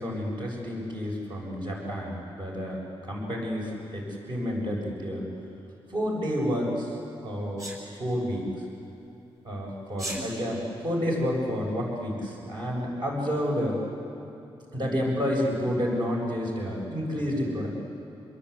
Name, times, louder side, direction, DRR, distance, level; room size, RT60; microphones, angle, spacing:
voice 1, 0.0-5.3 5.9-7.0 7.2-7.7 8.0-8.5 9.4-13.8 14.7-17.7, equal, 50° right, -2 dB, 7.3 m, -30 dB
Sneeze, 7.6-7.8 9.9-10.2, right 1 dB, 35° right, 6.8 m, -34 dB
27.5 x 22.5 x 8.6 m, 2.8 s
wide cardioid pair, 140°, 10 cm